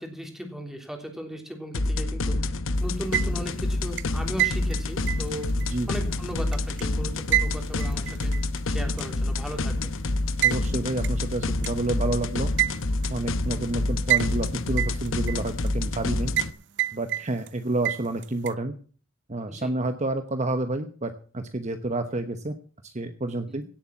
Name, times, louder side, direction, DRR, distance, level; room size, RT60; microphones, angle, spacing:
voice 1, 0.0-2.4 2.8-5.5 5.9-8.3 8.6-9.9 19.5-19.7 23.5-23.6, equal, ahead, 3 dB, 3.4 m, -37 dB
sound 1, 1.7-16.5, left 2 dB, 70° left, 0.9 m, -28 dB
Bad Fluorescent Lamp clicks, 2.9-3.6 4.0-6.8 7.3-8.6 9.0-9.1 10.4-10.6 11.0-11.1 11.6-11.7 12.6-13.1 14.1-14.5 14.8-15.7 16.4-16.5 16.8-17.5 17.8-18.5, right 15 dB, 60° right, 0.7 m, -27 dB
voice 2, 5.6-5.9 10.4-12.5 13.1-16.3 16.9-18.7 19.3-22.5 22.8-23.6, right 2 dB, 35° right, 8 dB, 1.1 m, -29 dB
17.0 x 8.3 x 5.9 m, 0.42 s
head